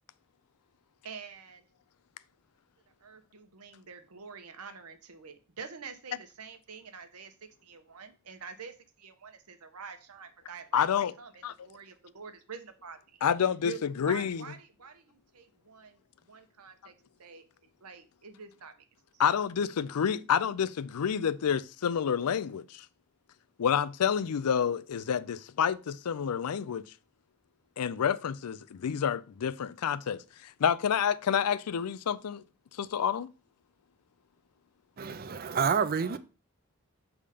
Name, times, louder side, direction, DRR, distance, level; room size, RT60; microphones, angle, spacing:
voice 1, 1.0-1.6 3.0-7.3 7.6-10.9 11.2-13.2 13.6-16.0 16.3-16.9 17.2-17.4 17.8-18.8, right 6 dB, 85° right, 1.0 m, -46 dB
voice 2, 10.7-11.1 11.4-11.5 13.2-14.4 19.2-22.8 23.6-26.8 27.8-30.2 30.6-32.4 32.8-33.3, left 8 dB, 90° left, 0.4 m, -28 dB
voice 3, 35.0-36.2, right 6 dB, 40° right, 0.5 m, -28 dB
6.8 x 3.6 x 5.0 m
head